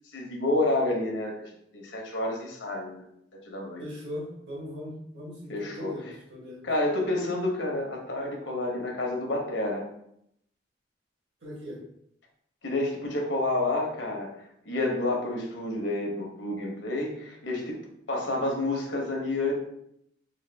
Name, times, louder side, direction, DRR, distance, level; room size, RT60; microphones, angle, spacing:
voice 1, 0.1-3.0 3.5-3.8 5.5-6.0 6.6-9.8 12.6-14.3 14.6-17.8 18.1-19.5, left 2 dB, 85° left, 0 dB, 1.0 m, -29 dB
voice 2, 3.8-6.6 11.4-11.8, left 1 dB, 70° right, -4 dB, 1.3 m, -39 dB
3.8 x 2.2 x 3.4 m, 0.75 s
head